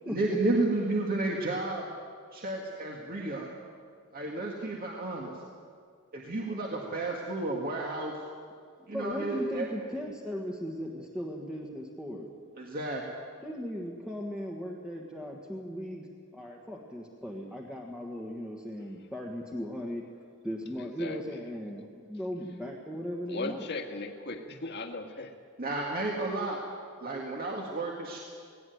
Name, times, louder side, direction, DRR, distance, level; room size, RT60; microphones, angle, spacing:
voice 1, 0.1-1.8 2.3-3.5 4.1-5.3 6.1-8.1 8.9-9.7 12.6-13.0 25.6-26.6 27.0-28.2, right 2 dB, 45° right, -1 dB, 2.0 m, -32 dB
voice 2, 8.9-12.3 13.4-16.1 16.3-20.0 20.4-23.7, equal, 5° right, -1 dB, 1.6 m, -37 dB
voice 3, 20.8-21.4 23.3-25.4, left 2 dB, 50° left, 5 dB, 1.8 m, -38 dB
18.5 x 18.0 x 9.4 m, 2.1 s
head